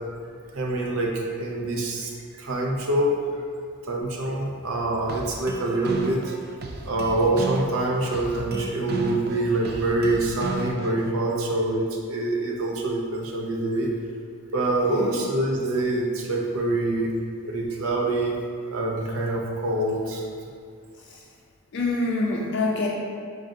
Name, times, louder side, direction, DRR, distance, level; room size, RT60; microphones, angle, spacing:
voice 1, 0.5-3.4 3.8-6.3 6.8-13.9 14.5-17.1 17.4-18.4 18.7-20.3, right 2 dB, 70° right, -1 dB, 0.7 m, -25 dB
sound 1, 5.1-11.1, right 3 dB, 45° right, 0.3 m, -34 dB
voice 2, 14.9-15.3 21.7-22.9, left 2 dB, 50° left, -2 dB, 0.4 m, -26 dB
5.2 x 2.4 x 3.7 m, 2.2 s
head